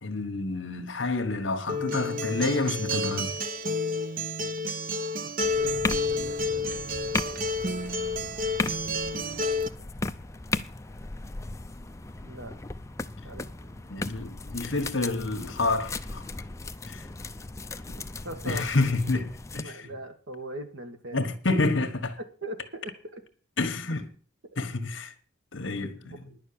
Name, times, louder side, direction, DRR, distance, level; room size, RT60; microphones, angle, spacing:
voice 1, 0.0-3.3 13.9-16.2 16.8-17.1 18.4-19.9 21.1-22.2 23.6-24.1 24.6-25.1 25.5-26.2, left 3 dB, 60° left, 1.5 m, -28 dB
Acoustic guitar, 1.7-9.7, left 1 dB, 40° right, 0.8 m, -30 dB
voice 2, 5.2-5.8 6.1-7.5 12.2-12.6 13.2-13.8 18.0-18.7 19.6-21.2 22.4-23.2 24.5-24.6 26.0-26.4, right 1 dB, 65° right, 1.8 m, -41 dB
sound 1, 5.4-19.6, left 3 dB, 15° left, 0.5 m, -36 dB
10.5 x 6.6 x 8.7 m
head